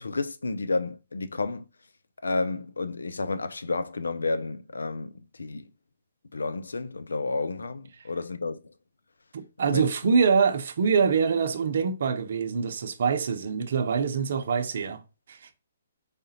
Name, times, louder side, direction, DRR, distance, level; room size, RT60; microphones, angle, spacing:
voice 1, 0.0-1.7 2.2-5.7 6.3-8.7 9.7-10.1, left 3 dB, 85° left, 0.5 m, -31 dB
voice 2, 9.3-15.0 15.3-15.5, right 6 dB, 60° right, 0.7 m, -25 dB
4.9 x 3.5 x 2.8 m
hypercardioid pair, 135°, 0 cm